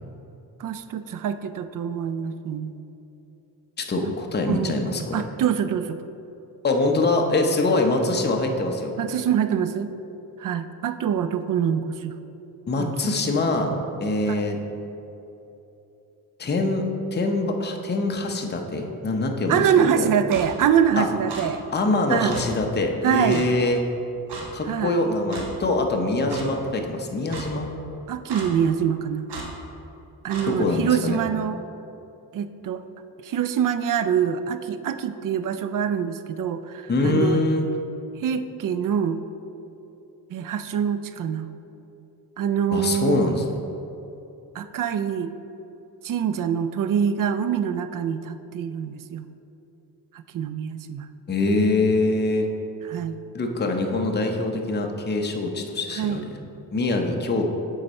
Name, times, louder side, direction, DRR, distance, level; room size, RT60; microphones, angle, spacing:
voice 1, 0.6-2.7 4.5-4.9 5.1-6.0 9.0-9.9 10.4-12.1 12.8-12.9 14.3-14.4 19.5-21.6 22.1-22.4 23.0-23.5 24.7-25.0 28.1-29.3 30.2-31.6 32.3-32.8 33.2-37.4 38.2-39.2 40.3-41.5 42.4-43.4 44.5-45.3 46.0-49.3 50.1-51.1 52.9-53.2 55.9-56.3, right 8 dB, 55° right, 11 dB, 0.5 m, -25 dB
voice 2, 3.8-5.2 6.6-9.0 12.7-13.7 14.0-14.6 16.4-20.1 21.0-21.1 21.7-23.8 24.5-27.7 30.5-31.2 36.9-37.7 42.7-43.5 51.3-52.5 53.3-56.2 56.7-57.5, left 2 dB, 25° left, 3 dB, 0.7 m, -24 dB
Clock, 20.3-20.5 21.3-21.4 22.3-22.4 23.3-23.5 24.3-24.5 25.3-25.5 26.3-26.4 27.3-27.5 28.3-28.5 29.3-29.5 30.3-30.5, right 4 dB, 75° right, 1.3 m, -35 dB
7.8 x 4.7 x 4.2 m, 3.0 s
cardioid pair, 85°, 40 cm